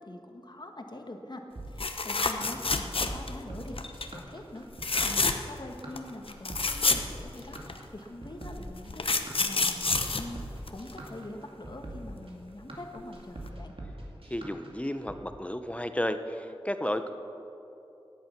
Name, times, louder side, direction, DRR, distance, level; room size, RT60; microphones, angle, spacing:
voice 1, 0.0-3.8 4.1-10.4 10.7-13.7, left 1 dB, 45° left, 4 dB, 1.6 m, -44 dB
sound 1, 1.6-15.2, right 1 dB, 65° right, 2.3 m, -43 dB
sound 2, 1.8-3.4 3.8-4.1 4.7-5.6 6.0-6.1 6.3-7.8 8.5-11.1 13.0-13.2 13.5-13.6, left 3 dB, 65° left, 0.9 m, -28 dB
voice 2, 14.3-17.1, left 1 dB, 10° left, 8 dB, 0.8 m, -32 dB
17.5 x 11.0 x 6.0 m, 2.9 s
wide cardioid pair, 65°, 10 cm